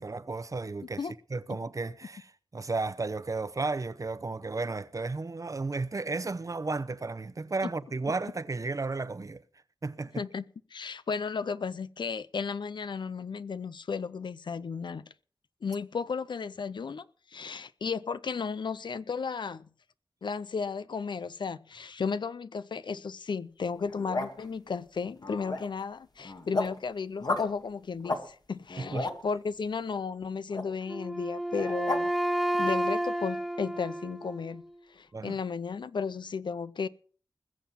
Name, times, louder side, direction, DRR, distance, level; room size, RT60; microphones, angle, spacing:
voice 1, 0.0-1.0 1.3-9.4 9.8-10.2 28.8-29.1 35.1-35.4, right 3 dB, 45° right, 0.7 m, -33 dB
voice 2, 10.7-15.1 15.6-19.7 20.2-32.1 32.5-34.6 34.9-36.9, left 5 dB, 85° left, 0.6 m, -34 dB
sound 1, 23.8-24.5 25.2-25.8 26.2-26.8 27.2-27.5 28.0-28.2 28.6-29.2 30.5-30.6 31.5-32.0, left 2 dB, 60° left, 2.0 m, -33 dB
Wind instrument woodwind instrument, 30.9-34.8, right 1 dB, ahead, 0.8 m, -31 dB
20.5 x 7.4 x 5.8 m
wide cardioid pair, 65°, 8 cm